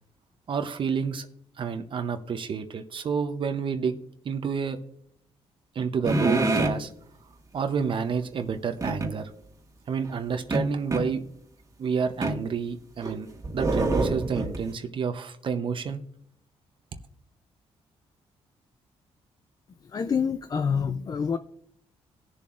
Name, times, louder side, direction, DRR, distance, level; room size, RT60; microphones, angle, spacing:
voice 1, 0.5-1.3 1.6-4.0 4.2-4.8 5.7-6.9 7.5-9.3 9.9-11.2 11.8-13.3 13.5-16.0, right 6 dB, 50° right, 7 dB, 0.7 m, -29 dB
sound 1, 6.0-6.8 8.8-9.1 10.5-11.1 12.2-12.4 13.0-14.7, right 2 dB, 30° right, 1.5 m, -25 dB
voice 2, 19.9-21.4, left 6 dB, 35° left, 10 dB, 0.4 m, -26 dB
18.0 x 7.0 x 2.5 m, 0.68 s
cardioid pair, 100°, 11 cm